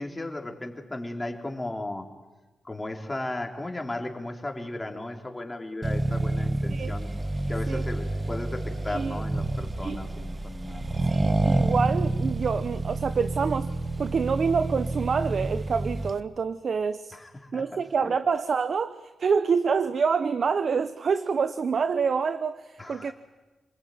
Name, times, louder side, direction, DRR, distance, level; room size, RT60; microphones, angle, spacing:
voice 1, 0.0-2.1 2.6-7.1 7.5-11.0 17.1-18.1 22.8-23.1, left 2 dB, 15° left, 2 dB, 3.8 m, -35 dB
Accelerating revving vroom, 5.8-16.2, right 2 dB, 25° right, 1.3 m, -28 dB
voice 2, 8.9-9.2 9.8-10.0 11.1-13.7 14.0-17.2 17.5-23.1, right 5 dB, 55° right, 12 dB, 1.0 m, -27 dB
28.5 x 20.5 x 9.4 m, 1.2 s
cardioid pair, 90°, 0 cm